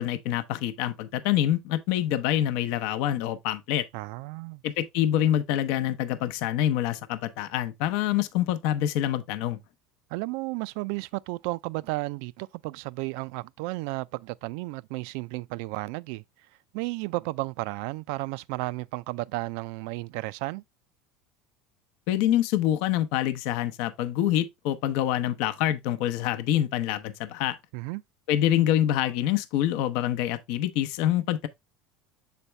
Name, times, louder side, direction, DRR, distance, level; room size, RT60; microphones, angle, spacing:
voice 1, 0.0-3.8 4.6-9.6 22.1-27.6 28.3-31.5, left 12 dB, 70° left, 0.7 m, -26 dB
voice 2, 3.9-4.6 10.1-16.2 16.7-20.6 27.7-28.0, right 22 dB, 70° right, 0.3 m, -33 dB
7.1 x 4.2 x 3.2 m
supercardioid pair, 135°, 0 cm